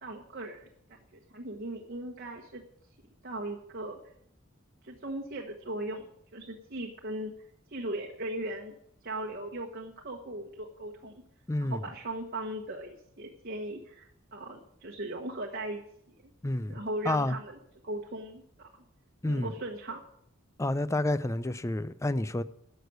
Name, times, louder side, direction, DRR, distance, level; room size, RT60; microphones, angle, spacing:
voice 1, 0.0-2.6 3.2-4.0 4.8-7.3 7.7-8.7 9.0-11.1 11.6-15.8 16.2-16.3 16.7-17.6 17.8-18.8 19.3-20.0, right 1 dB, 50° right, 1.2 m, -38 dB
voice 2, 11.5-11.8 16.4-17.4 19.2-19.5 20.6-22.4, left 1 dB, 15° left, 0.5 m, -29 dB
11.0 x 6.7 x 9.4 m
head